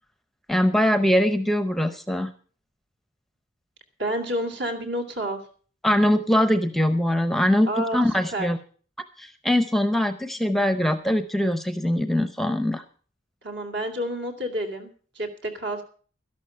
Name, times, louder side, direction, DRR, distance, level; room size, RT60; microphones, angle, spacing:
voice 1, 0.5-2.3 5.8-8.6 9.2-12.8, left 1 dB, ahead, 10 dB, 0.7 m, -22 dB
voice 2, 4.0-5.4 7.7-8.0 8.3-8.5 13.4-15.8, right 1 dB, 60° right, 5 dB, 2.7 m, -29 dB
13.0 x 11.5 x 5.6 m, 0.42 s
head